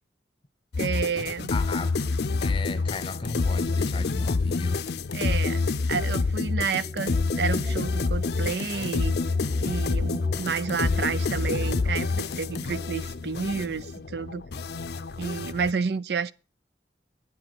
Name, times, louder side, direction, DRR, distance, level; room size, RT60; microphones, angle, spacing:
sound 1, 0.7-15.7, left 3 dB, 65° left, 0.5 m, -27 dB
voice 1, 0.8-1.5 5.1-9.2 9.6-14.4 15.2-16.3, right 5 dB, 70° right, 0.5 m, -30 dB
voice 2, 1.5-4.8, left 3 dB, 30° left, 0.8 m, -36 dB
sound 2, 6.5-14.0, equal, 35° right, 1.9 m, -46 dB
9.7 x 7.7 x 5.9 m
head